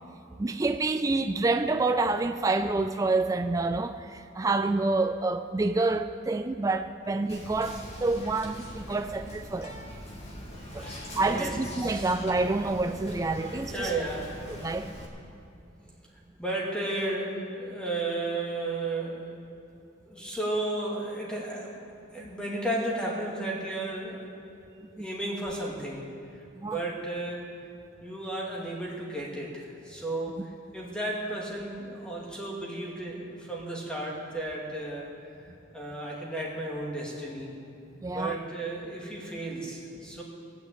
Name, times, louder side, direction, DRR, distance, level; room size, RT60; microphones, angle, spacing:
voice 1, 0.4-9.7 10.7-10.9 11.2-13.9 14.6-14.9 25.0-25.1 26.6-26.8 38.0-38.4, right 3 dB, 20° right, 8 dB, 0.3 m, -28 dB
Whispering, 7.3-15.1, equal, 30° left, 2.3 m, -42 dB
voice 2, 10.8-11.6 11.8-12.1 13.6-14.3 16.4-19.4 20.1-21.8 22.1-24.3 25.0-26.1 26.3-27.5 28.0-35.5 35.7-37.5 38.1-40.2, right 2 dB, 5° left, -4 dB, 2.3 m, -34 dB
19.0 x 6.3 x 8.5 m, 2.6 s
head